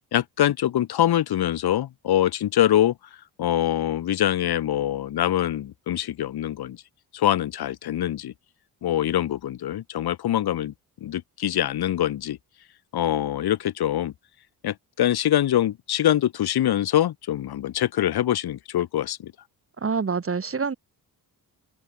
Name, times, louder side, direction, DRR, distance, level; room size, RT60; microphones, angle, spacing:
voice 1, 0.1-2.9 3.4-6.8 7.1-8.3 8.8-10.7 11.0-12.4 12.9-14.1 14.6-19.3, left 12 dB, 80° left, 2.9 m, -24 dB
voice 2, 19.8-20.7, right 5 dB, 35° right, 3.7 m, -26 dB
cardioid pair, 100°, 37 cm